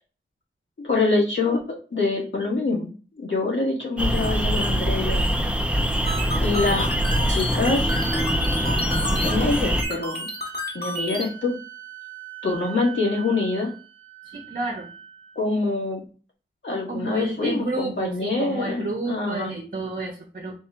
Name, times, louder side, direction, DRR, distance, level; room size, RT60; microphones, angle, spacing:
voice 1, 0.8-5.2 6.4-6.9 7.3-7.9 9.2-10.3 10.7-11.6 12.4-13.7 15.4-16.0 16.6-19.6, left 3 dB, 70° left, -3 dB, 1.9 m, -25 dB
sound 1, 4.0-9.8, equal, 5° right, 0.7 m, -23 dB
sound 2, 6.1-11.3, left 1 dB, 50° left, 1.7 m, -31 dB
sound 3, 7.9-15.4, right 13 dB, 80° right, 0.7 m, -41 dB
voice 2, 14.2-14.9 16.9-20.5, right 2 dB, 45° right, 1 dB, 0.9 m, -30 dB
4.4 x 2.4 x 4.4 m, 0.38 s
wide cardioid pair, 80°, 20 cm